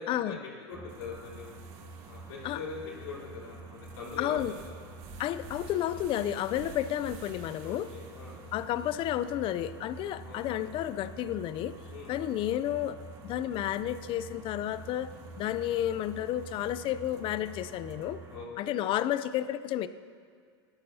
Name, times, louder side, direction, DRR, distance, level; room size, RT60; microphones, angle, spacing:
voice 1, 0.0-1.6 2.0-4.7 7.6-8.4 10.2-10.7 11.9-12.1 18.3-18.8, left 4 dB, 70° left, -6 dB, 3.6 m, -42 dB
sound 1, 0.7-18.4, right 2 dB, 25° right, 1.5 m, -47 dB
sound 2, 0.9-18.3, right 6 dB, 55° right, 1.2 m, -55 dB
voice 2, 4.2-4.5 5.2-7.9 8.5-11.7 12.1-13.0 13.2-15.1 15.4-18.2 18.6-19.9, left 12 dB, 40° left, 14 dB, 0.5 m, -31 dB
18.0 x 12.0 x 2.8 m, 2.1 s
hypercardioid pair, 110°, 14 cm